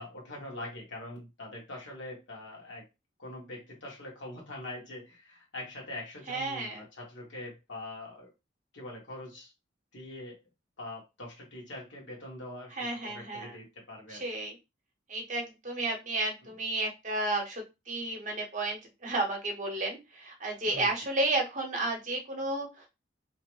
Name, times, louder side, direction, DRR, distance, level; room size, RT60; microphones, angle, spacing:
voice 1, 0.0-2.9 3.2-8.3 8.7-9.5 9.9-10.4 10.8-12.8 13.0-14.2 20.6-20.9, left 1 dB, 80° left, -2 dB, 1.3 m, -43 dB
voice 2, 6.3-6.8 12.8-13.6 14.1-14.5 15.1-22.9, right 2 dB, 40° right, 1 dB, 0.8 m, -32 dB
2.9 x 2.1 x 3.1 m, 0.24 s
head